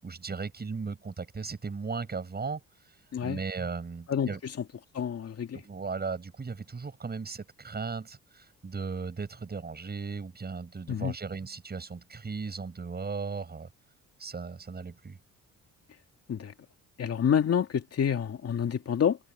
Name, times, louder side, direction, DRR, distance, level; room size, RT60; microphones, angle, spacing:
voice 1, 0.0-2.6 3.2-4.4 5.5-13.7 14.2-15.2, right 4 dB, 30° right, 7.2 m, -36 dB
voice 2, 3.1-3.4 4.1-4.3 4.9-5.6 10.9-11.1 16.3-16.5 17.0-19.2, left 8 dB, 55° left, 2.6 m, -28 dB
cardioid pair, 90°, 30 cm